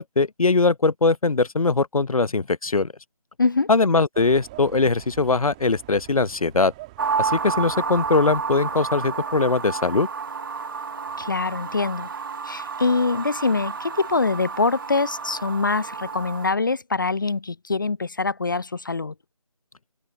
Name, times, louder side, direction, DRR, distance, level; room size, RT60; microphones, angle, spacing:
voice 1, 0.0-2.9 3.7-6.7 7.2-10.1, left 3 dB, 90° left, 0.7 m, -21 dB
voice 2, 3.4-3.7 11.2-12.1 12.4-19.1, left 3 dB, 35° left, 0.5 m, -24 dB
sound 1, 4.1-9.7, right 20 dB, 10° right, 1.6 m, -46 dB
sound 2, 7.0-16.5, right 5 dB, 40° right, 1.7 m, -31 dB
figure-of-eight pair, 160°, 18 cm